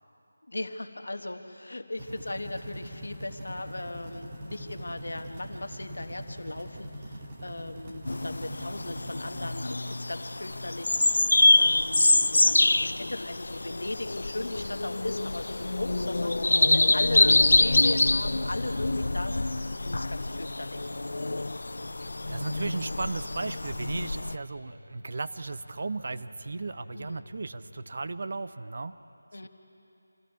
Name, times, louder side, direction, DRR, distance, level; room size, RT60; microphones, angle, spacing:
voice 1, 0.5-11.2 11.6-20.9 26.9-27.2 29.3-29.5, left 2 dB, 85° left, 6 dB, 1.3 m, -38 dB
sound 1, 2.0-9.5, equal, 20° right, 1.8 m, -42 dB
sound 2, 8.1-24.4, left 2 dB, 70° left, 0.5 m, -25 dB
sound 3, 12.2-28.3, left 1 dB, 5° left, 5.5 m, -52 dB
voice 2, 22.3-29.0 29.3-29.5, right 3 dB, 45° right, 12 dB, 0.6 m, -35 dB
27.5 x 20.5 x 4.7 m, 2.9 s
figure-of-eight pair, 175°, 0 cm